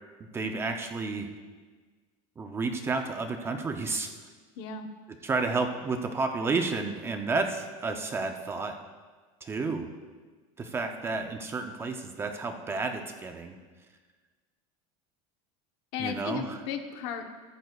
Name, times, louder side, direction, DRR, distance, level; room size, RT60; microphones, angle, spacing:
voice 1, 0.3-1.3 2.4-4.1 5.2-8.7 9.4-9.9 10.6-13.5 16.0-16.6, right 3 dB, 15° right, 5 dB, 0.5 m, -31 dB
voice 2, 4.6-4.9 15.9-17.4, left 7 dB, 55° left, 6 dB, 1.0 m, -35 dB
14.5 x 12.0 x 2.3 m, 1.4 s
cardioid pair, 170°, 16 cm